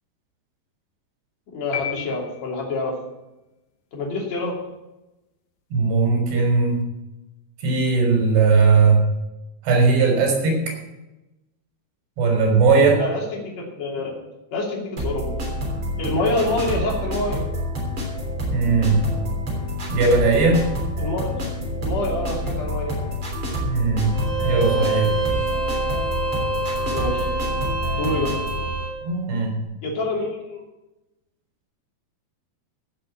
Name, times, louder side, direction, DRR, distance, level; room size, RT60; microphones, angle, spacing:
voice 1, 1.5-2.9 3.9-4.6 12.9-14.1 14.5-15.3 16.0-17.4 21.0-21.5 21.8-23.1 26.9-27.3 28.0-28.3 29.8-30.6, left 2 dB, 45° left, -2 dB, 3.7 m, -27 dB
sound 1, 1.7-3.0, left 9 dB, 70° left, 3.0 m, -33 dB
voice 2, 5.7-6.8 7.6-9.0 9.6-10.7 12.2-13.0 18.5-19.0 19.9-20.7 23.6-25.1 29.0-29.5, right 4 dB, 80° right, 0 dB, 6.0 m, -18 dB
sound 2, 15.0-28.7, equal, 30° right, 3.9 m, -28 dB
Bowed string instrument, 24.1-29.0, right 3 dB, 60° right, 7.7 m, -26 dB
15.5 x 6.8 x 7.3 m, 0.99 s
omnidirectional pair, 4.8 m